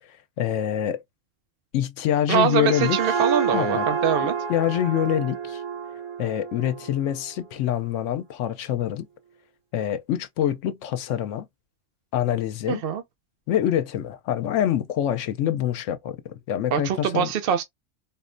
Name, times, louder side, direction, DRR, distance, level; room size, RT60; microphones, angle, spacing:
voice 1, 0.4-1.0 1.7-3.0 3.5-3.9 4.5-5.6 6.2-9.1 9.7-11.5 12.1-12.8 13.5-17.3, left 10 dB, 85° left, 1.0 m, -25 dB
voice 2, 2.3-4.3 12.7-13.0 16.7-17.6, right 8 dB, 60° right, 0.7 m, -23 dB
sound 1, 2.3-7.8, right 6 dB, 85° right, 1.4 m, -29 dB
4.1 x 2.1 x 2.5 m
omnidirectional pair, 1.2 m